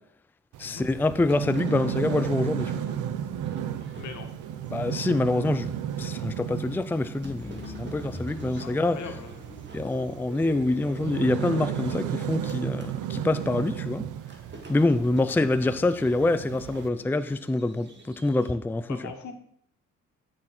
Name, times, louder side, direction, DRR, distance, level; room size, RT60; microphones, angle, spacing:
sound 1, 0.5-16.9, right 10 dB, 85° right, 0.8 m, -34 dB
voice 1, 0.6-2.8 4.7-5.7 6.0-9.0 9.7-14.1 14.7-19.0, left 2 dB, 5° left, 11 dB, 0.4 m, -26 dB
sound 2, 1.0-12.9 13.3-18.5, right 3 dB, 35° right, 2.2 m, -49 dB
voice 2, 4.0-4.3 8.5-9.3 15.2-15.3 18.9-19.3, left 6 dB, 70° left, 5 dB, 1.8 m, -40 dB
sound 3, 7.2-12.3, left 3 dB, 25° left, 1.9 m, -43 dB
13.0 x 6.5 x 4.3 m, 0.66 s
cardioid pair, 90°, 30 cm